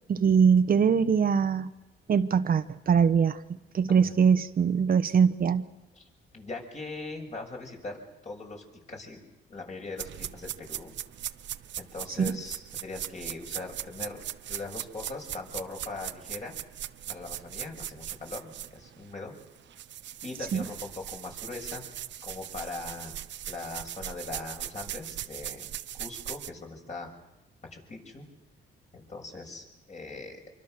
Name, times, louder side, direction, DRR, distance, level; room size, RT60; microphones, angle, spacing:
voice 1, 0.1-1.7 2.1-3.4 3.7-5.7 12.2-12.4 20.5-20.6, right 6 dB, 45° right, 10 dB, 1.0 m, -22 dB
voice 2, 3.9-4.2 5.9-6.0 6.3-9.2 9.5-10.9 11.8-14.2 14.5-16.5 17.1-19.3 20.2-21.8 22.2-23.2 23.5-25.7 25.9-27.1 27.7-28.2 28.9-30.4, left 3 dB, 35° left, 1 dB, 6.8 m, -40 dB
sound 1, 10.0-19.1 19.4-26.5, right 11 dB, 65° right, 0.8 m, -39 dB
26.0 x 24.5 x 6.7 m, 1.0 s
cardioid pair, 90°, 20 cm